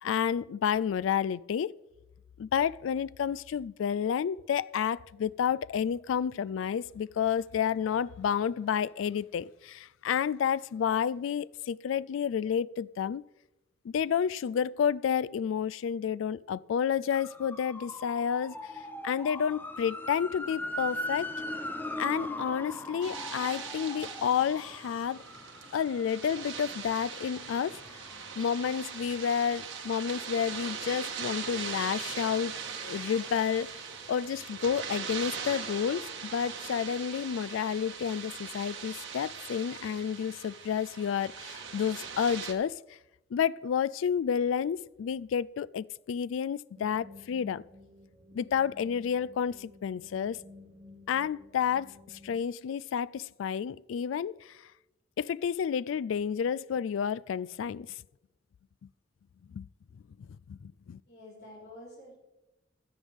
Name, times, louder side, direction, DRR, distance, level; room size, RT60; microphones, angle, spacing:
voice 1, 0.0-1.7 2.4-13.2 13.8-18.6 19.0-21.3 22.0-25.2 25.7-27.8 28.4-32.5 32.8-33.7 34.1-42.8 43.3-47.6 48.3-50.4 51.1-54.5 55.2-57.9 59.5-59.7 60.5-61.0, left 7 dB, 90° left, 0.3 m, -30 dB
sound 1, 17.1-30.9 31.2-33.8 34.1-34.2, left 1 dB, 10° left, 0.7 m, -41 dB
sound 2, 23.0-42.5, right 6 dB, 80° right, 1.6 m, -40 dB
sound 3, 46.8-52.4, left 2 dB, 40° right, 2.0 m, -53 dB
voice 2, 61.0-62.1, left 1 dB, 60° left, 4.9 m, -48 dB
16.5 x 12.0 x 3.5 m
head